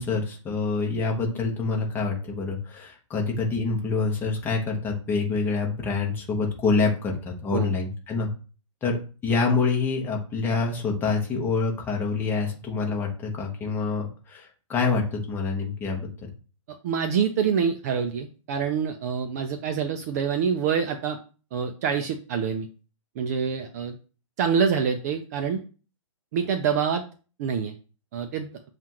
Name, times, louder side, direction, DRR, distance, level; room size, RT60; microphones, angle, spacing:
voice 1, 0.0-8.3 8.8-16.3, left 4 dB, 10° left, 0 dB, 1.0 m, -26 dB
voice 2, 16.7-21.2 21.5-22.7 23.2-23.9 24.4-25.6 26.3-27.0 27.4-27.7 28.1-28.5, right 7 dB, 30° right, 5 dB, 0.4 m, -26 dB
7.2 x 2.5 x 3.0 m, 0.36 s
hypercardioid pair, 145°, 17 cm